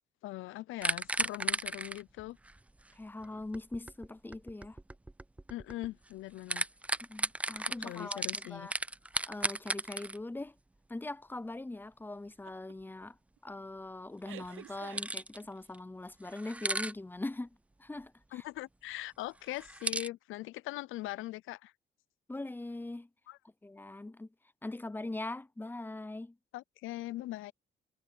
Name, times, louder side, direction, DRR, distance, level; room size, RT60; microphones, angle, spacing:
voice 1, 0.2-2.4 5.5-6.6 7.8-8.7 18.3-21.7 23.3-23.4 26.5-27.5, left 17 dB, 85° left, 0.6 m, -41 dB
sound 1, 0.8-6.1 6.4-10.2 14.4-15.4 15.7-15.8 16.2-16.9 19.4-20.1, right 2 dB, 5° right, 0.3 m, -35 dB
voice 2, 2.9-4.8 7.1-8.7 9.3-10.6 10.9-13.2 13.4-17.5 17.8-18.4 22.3-23.1 23.6-24.3 24.6-26.4, left 2 dB, 10° left, 0.7 m, -41 dB
sound 2, 12.4-12.7 13.1-13.4 14.2-15.7, right 15 dB, 90° right, 0.7 m, -50 dB
cardioid pair, 90°, 20 cm